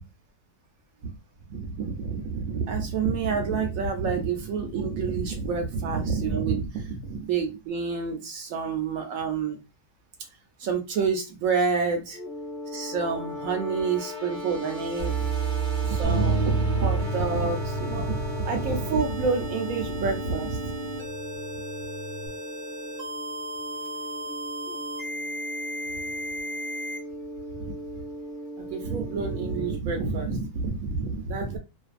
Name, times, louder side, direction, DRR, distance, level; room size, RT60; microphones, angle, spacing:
voice 1, 1.5-9.6 10.6-12.2 12.7-15.2 15.8-20.7 27.6-27.7 28.6-31.6, right 5 dB, 80° right, 3 dB, 1.1 m, -28 dB
sound 1, 12.1-29.8, left 2 dB, 10° left, 0.3 m, -38 dB
sound 2, 15.0-27.0, right 6 dB, 55° right, 0.8 m, -33 dB
Bass guitar, 16.0-22.3, equal, 25° right, 0.6 m, -33 dB
2.6 x 2.5 x 2.4 m, 0.26 s
omnidirectional pair, 1.4 m